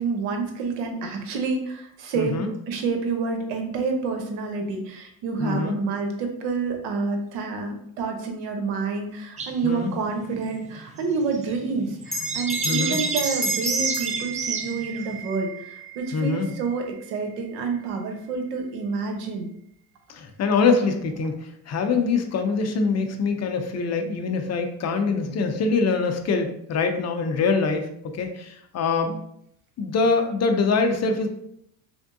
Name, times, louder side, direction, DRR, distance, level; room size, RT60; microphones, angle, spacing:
voice 1, 0.0-2.4 2.7-19.5, right 4 dB, 80° right, 4 dB, 1.0 m, -28 dB
voice 2, 2.2-2.5 5.4-5.8 9.6-9.9 12.6-13.0 16.1-16.5 20.1-29.2 29.8-31.3, left 4 dB, 35° left, 6 dB, 0.5 m, -24 dB
sound 1, 9.4-15.1, right 4 dB, 20° right, 0.3 m, -32 dB
Bell, 12.1-16.9, right 3 dB, ahead, 1.0 m, -31 dB
3.5 x 3.5 x 2.6 m, 0.71 s
supercardioid pair, 95°, 44 cm